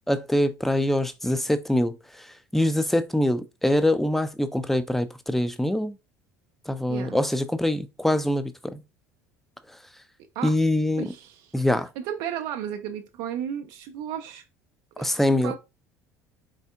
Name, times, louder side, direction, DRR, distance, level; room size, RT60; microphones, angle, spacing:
voice 1, 0.1-6.0 6.7-8.8 10.4-11.1 11.5-11.9 15.0-15.5, left 1 dB, 5° left, 0.5 m, -24 dB
voice 2, 11.0-11.5 12.0-14.4 15.0-15.1 15.4-15.6, right 9 dB, 60° right, 0.5 m, -33 dB
4.1 x 3.8 x 2.3 m
figure-of-eight pair, 60°, 9 cm